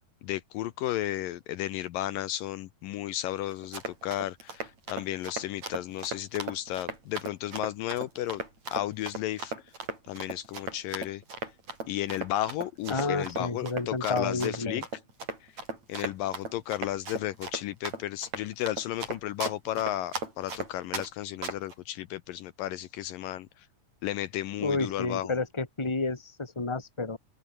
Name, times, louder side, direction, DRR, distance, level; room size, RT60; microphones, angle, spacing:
voice 1, 0.2-8.4 8.7-9.5 10.1-11.2 11.9-14.9 15.4-15.6 15.9-23.7 24.0-25.4, left 13 dB, 75° left, 2.5 m, -33 dB
Run, 3.5-21.1 21.4-21.7, right 3 dB, 50° right, 8.4 m, -37 dB
voice 2, 12.9-14.8 24.6-27.2, left 3 dB, 10° left, 2.4 m, -30 dB
open air
omnidirectional pair, 4.2 m